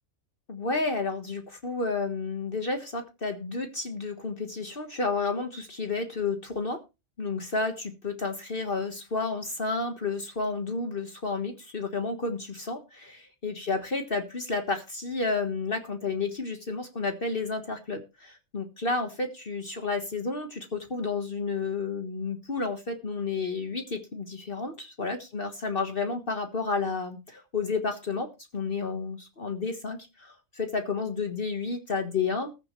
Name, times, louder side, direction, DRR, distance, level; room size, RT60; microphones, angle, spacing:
voice 1, 0.5-6.8 7.2-32.5, left 4 dB, 45° left, 5 dB, 1.7 m, -31 dB
20.5 x 7.0 x 3.2 m, 0.27 s
omnidirectional pair, 1.3 m